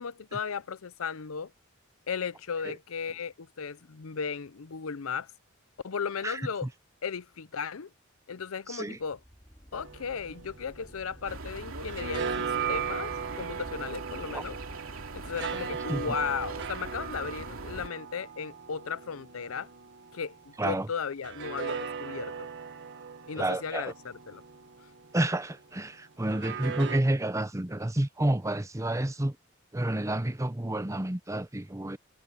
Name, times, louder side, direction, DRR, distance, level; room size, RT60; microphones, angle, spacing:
voice 1, 0.0-1.5 2.1-5.3 5.8-6.7 7.0-7.9 8.3-9.2 9.7-14.6 15.1-19.7 20.1-22.5 23.3-24.4, left 6 dB, 85° left, 0.6 m, -36 dB
voice 2, 8.7-9.0 14.3-14.4 15.9-16.1 20.6-20.9 23.4-23.9 25.1-29.4 29.7-32.0, right 1 dB, 15° right, 0.8 m, -30 dB
sound 1, 8.9-13.8, equal, 15° left, 4.9 m, -53 dB
sound 2, 9.7-11.4 11.7-20.4 21.2-25.3 26.3-27.0, right 6 dB, 60° right, 1.7 m, -38 dB
sound 3, 11.3-17.9, right 3 dB, 85° right, 2.7 m, -42 dB
head